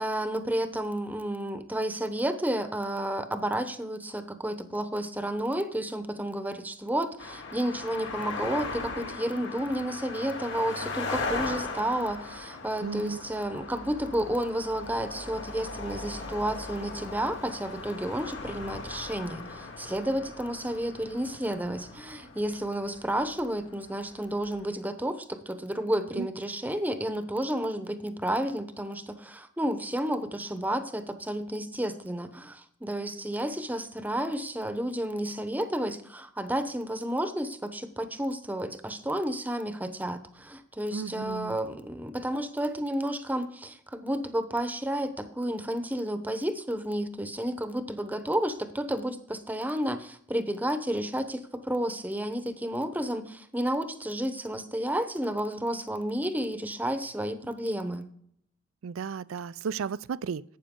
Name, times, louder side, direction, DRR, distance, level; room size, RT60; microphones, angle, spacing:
voice 1, 0.0-58.1, right 1 dB, 10° right, 10 dB, 0.8 m, -31 dB
sound 1, 7.2-24.7, left 3 dB, 60° left, 2.0 m, -39 dB
voice 2, 12.8-13.2 26.1-26.3 40.9-41.6 58.8-60.4, right 6 dB, 85° right, 19 dB, 0.4 m, -34 dB
12.0 x 8.8 x 3.7 m, 0.67 s
head